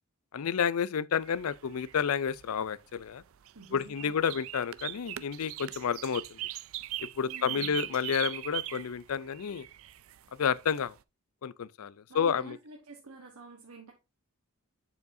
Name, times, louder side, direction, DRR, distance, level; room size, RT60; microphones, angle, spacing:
voice 1, 0.3-3.2 3.7-6.4 7.0-9.7 10.4-10.9 11.4-12.6, left 7 dB, 80° left, 0.4 m, -30 dB
sound 1, 1.2-11.0, right 14 dB, 65° right, 0.4 m, -41 dB
voice 2, 3.5-4.3 7.3-7.8 12.1-13.9, right 4 dB, 85° right, 1.2 m, -49 dB
8.1 x 7.1 x 2.7 m
head